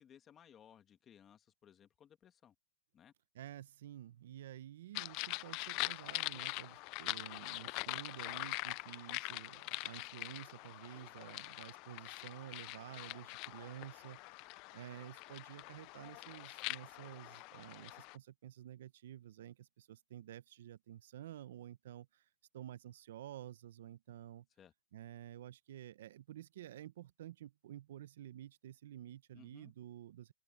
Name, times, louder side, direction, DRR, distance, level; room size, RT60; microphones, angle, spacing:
voice 1, 0.0-2.5 2.9-3.1 24.6-24.7 29.3-29.7, left 9 dB, 20° left, 1.6 m, -61 dB
voice 2, 3.3-24.5 24.9-30.3, right 12 dB, 60° right, 0.8 m, -51 dB
sound 1, 4.9-18.2, left 26 dB, 35° left, 0.3 m, -43 dB
open air
hypercardioid pair, 155°, 0 cm